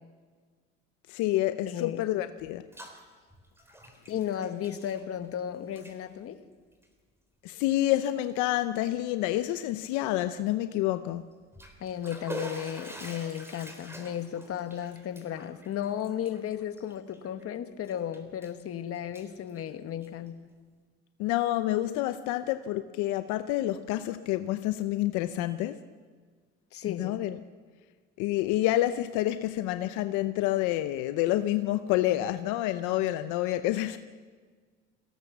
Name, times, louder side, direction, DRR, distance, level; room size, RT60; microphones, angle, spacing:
voice 1, 1.1-2.7 7.4-11.3 21.2-25.8 26.9-27.4 28.2-34.0, left 14 dB, 85° left, 10 dB, 0.8 m, -28 dB
voice 2, 1.7-2.0 4.1-6.4 11.8-20.4 26.7-27.1, left 10 dB, 50° left, 9 dB, 1.5 m, -34 dB
Bathtub (filling or washing), 2.4-3.0 3.3-5.4 5.7-6.0 6.7-6.9 7.5-7.6 8.0-8.1 11.3-17.4 17.8-18.6 18.9-20.3, right 1 dB, 10° right, 3.7 m, -46 dB
22.0 x 17.0 x 7.3 m, 1.5 s
cardioid pair, 105°, 29 cm